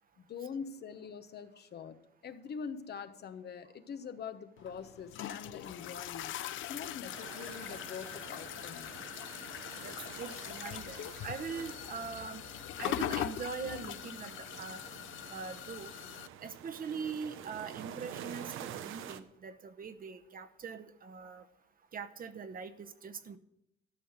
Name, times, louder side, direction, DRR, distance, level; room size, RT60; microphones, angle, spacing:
voice 1, 0.3-8.9, left 6 dB, 55° left, 10 dB, 1.0 m, -44 dB
sound 1, 4.6-16.3, left 12 dB, 75° left, 0.5 m, -41 dB
sound 2, 7.1-19.2, right 10 dB, 90° right, 0.8 m, -48 dB
voice 2, 9.8-11.0 11.2-12.4 12.8-14.8 15.3-15.9 16.4-18.5 18.8-21.4 21.9-23.4, right 5 dB, 45° right, 9 dB, 1.0 m, -42 dB
13.0 x 5.7 x 7.7 m, 0.78 s
cardioid pair, 90°, 20 cm